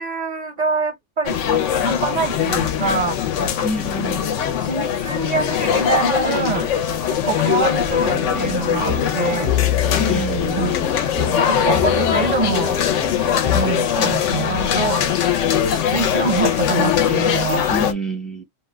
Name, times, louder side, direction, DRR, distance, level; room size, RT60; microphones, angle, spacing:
voice 1, 0.0-3.2 4.6-6.7 7.1-9.5 10.6-10.9 11.3-12.7 13.5-15.0 15.7-17.7, right 4 dB, 50° right, 0.5 m, -25 dB
sound 1, 1.3-17.9, left 9 dB, 90° left, 1.0 m, -21 dB
voice 2, 3.6-4.3 10.0-10.8 17.7-18.4, right 2 dB, ahead, 0.6 m, -28 dB
sound 2, 7.9-14.1, left 7 dB, 35° left, 0.9 m, -26 dB
2.8 x 2.2 x 3.2 m
omnidirectional pair, 1.2 m